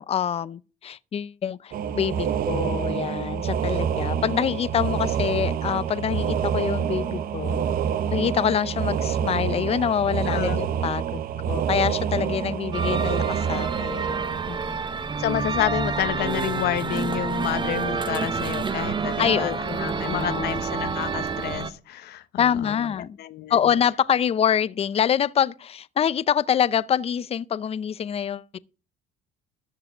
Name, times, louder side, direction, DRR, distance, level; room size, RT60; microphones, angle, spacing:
voice 1, 0.0-7.7 8.1-11.2 11.5-14.2 14.5-14.8 19.2-20.6 22.4-23.2 23.5-28.6, left 8 dB, 35° left, 0.6 m, -25 dB
sound 1, 1.7-15.2, right 8 dB, 60° right, 0.9 m, -27 dB
voice 2, 10.3-10.6 15.2-22.9 23.2-23.5, left 12 dB, 70° left, 1.0 m, -29 dB
sound 2, 12.7-21.7, right 5 dB, 30° right, 0.9 m, -28 dB
13.5 x 4.7 x 7.3 m
cardioid pair, 110°, 17 cm